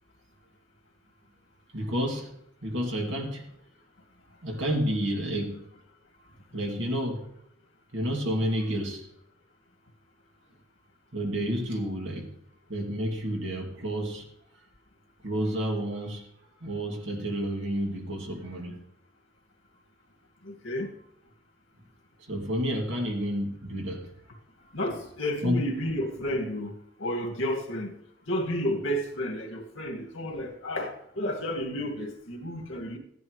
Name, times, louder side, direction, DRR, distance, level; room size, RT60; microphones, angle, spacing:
voice 1, 1.7-2.3 2.6-3.5 4.4-5.6 6.5-7.3 7.9-9.1 11.1-12.3 12.7-14.3 15.2-16.2 16.6-18.8 22.3-24.1 25.4-25.6, equal, 70° right, 0 dB, 2.5 m, -30 dB
voice 2, 20.5-20.9 24.7-26.7 27.0-27.9 28.3-33.0, equal, 90° left, 1 dB, 2.0 m, -31 dB
15.0 x 10.5 x 3.2 m, 0.74 s
head